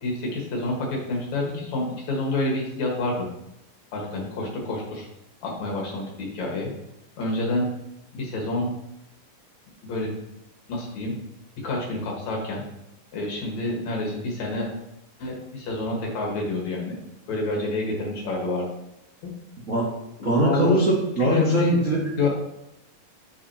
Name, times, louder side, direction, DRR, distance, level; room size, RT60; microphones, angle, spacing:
voice 1, 0.0-3.3 3.9-5.1 5.4-6.7 7.2-7.7 8.1-8.7 9.8-10.1 10.7-11.1 11.6-12.6 13.1-14.7 15.2-17.0 17.3-18.7 20.2-20.8 21.2-21.8 22.2-22.3, left 2 dB, 60° left, -2 dB, 2.7 m, -28 dB
voice 2, 20.2-22.0, right 1 dB, 40° right, -7 dB, 1.1 m, -21 dB
8.6 x 7.3 x 2.9 m, 0.84 s
omnidirectional pair, 3.8 m